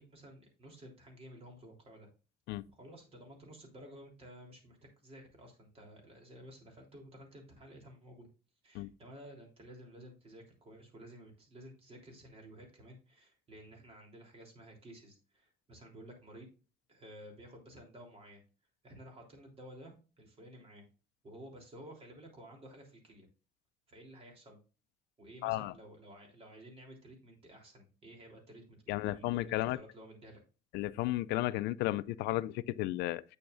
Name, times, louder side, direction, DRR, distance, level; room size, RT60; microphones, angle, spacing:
voice 1, 0.0-2.1 2.7-4.8 5.0-8.3 8.6-16.5 16.9-18.4 18.8-20.9 21.2-23.3 23.9-24.6 25.2-30.4, equal, 35° right, 3.4 m, -53 dB
voice 2, 25.4-25.7 28.9-29.8 30.7-33.2, left 16 dB, 85° left, 0.4 m, -33 dB
8.6 x 6.9 x 2.6 m
cardioid pair, 110°, 17 cm